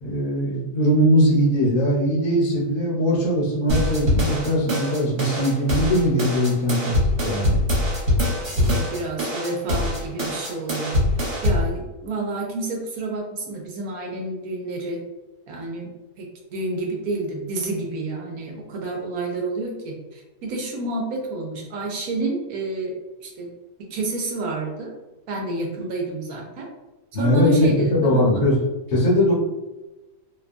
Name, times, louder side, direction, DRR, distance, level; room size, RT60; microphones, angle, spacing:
voice 1, 0.0-6.9 7.2-7.6 27.1-28.6 28.9-29.3, equal, 60° left, -5 dB, 1.2 m, -20 dB
sound 1, 3.7-11.7, left 1 dB, 55° right, 1.2 m, -23 dB
voice 2, 8.6-10.9 11.4-15.0 15.5-15.9 16.2-22.9 23.2-23.5 23.9-24.9 25.3-26.7 27.2-28.5, right 2 dB, 70° right, 0 dB, 1.0 m, -29 dB
2.9 x 2.1 x 2.5 m, 1.1 s
omnidirectional pair, 1.8 m